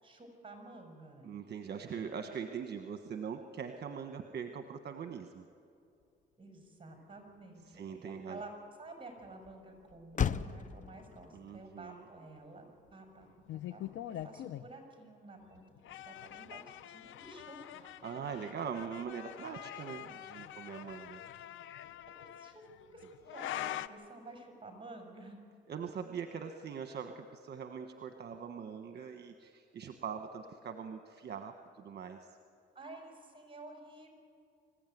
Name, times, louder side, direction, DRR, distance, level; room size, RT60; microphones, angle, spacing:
voice 1, 0.0-1.2 6.4-8.5 8.8-12.6 12.9-13.3 13.5-13.8 14.1-17.6 22.2-23.0 23.3-25.4 32.7-34.1, right 2 dB, 25° right, 4 dB, 6.4 m, -51 dB
voice 2, 1.2-5.5 7.7-8.4 11.3-12.0 18.0-21.2 25.7-32.4, right 7 dB, 55° right, 7 dB, 1.3 m, -42 dB
Motor vehicle (road), 6.0-14.7, left 8 dB, 40° left, 0.7 m, -42 dB
sound 1, 13.5-14.7 15.5-23.9, left 12 dB, 80° left, 0.8 m, -44 dB
25.5 x 15.5 x 9.3 m, 2.6 s
cardioid pair, 90°, 20 cm